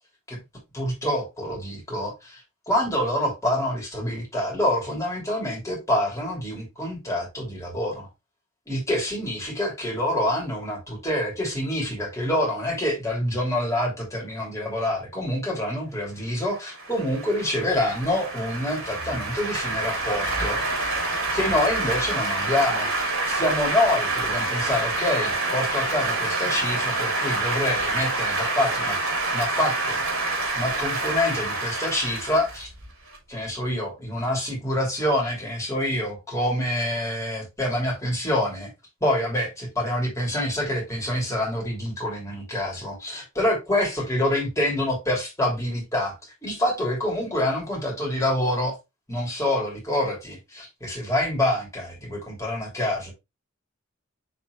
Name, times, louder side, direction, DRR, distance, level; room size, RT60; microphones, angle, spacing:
voice 1, 0.7-8.1 8.7-20.6 21.3-29.0 29.3-30.0 30.5-32.7 33.3-38.7 39.0-46.1 46.4-48.7 49.1-53.1, left 1 dB, 15° left, 3.0 m, -26 dB
sound 1, 16.5-33.2, right 2 dB, 75° right, 2.7 m, -27 dB
6.9 x 4.4 x 3.1 m
head